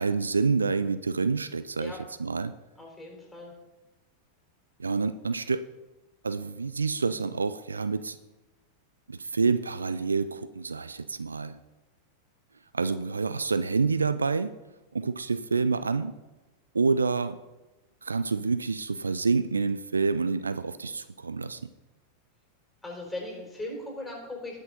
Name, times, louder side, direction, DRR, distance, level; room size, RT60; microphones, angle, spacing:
voice 1, 0.0-2.5 4.8-5.6 6.2-8.2 9.1-11.6 12.7-14.5 14.9-16.1 16.7-17.4 18.0-21.6, right 4 dB, 75° right, 14 dB, 0.4 m, -28 dB
voice 2, 2.8-3.5 22.8-24.6, left 2 dB, 5° left, -2 dB, 4.2 m, -38 dB
19.5 x 6.5 x 3.9 m, 1.1 s
figure-of-eight pair, 90°, 0 cm